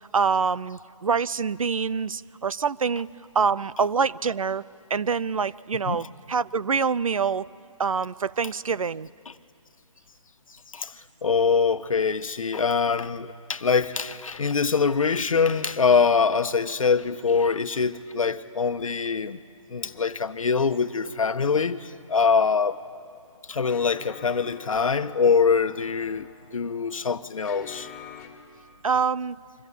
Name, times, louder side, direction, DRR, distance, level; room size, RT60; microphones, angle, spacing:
voice 1, 0.1-3.1 3.3-4.6 4.9-7.5 7.8-9.1 28.8-29.4, right 5 dB, 80° right, 0.7 m, -25 dB
voice 2, 11.2-19.4 19.7-22.8 23.5-27.9, left 5 dB, 80° left, 1.2 m, -24 dB
sound 1, 19.8-28.3, left 9 dB, 10° left, 2.1 m, -48 dB
28.0 x 24.5 x 8.5 m
hypercardioid pair, 160°, 17 cm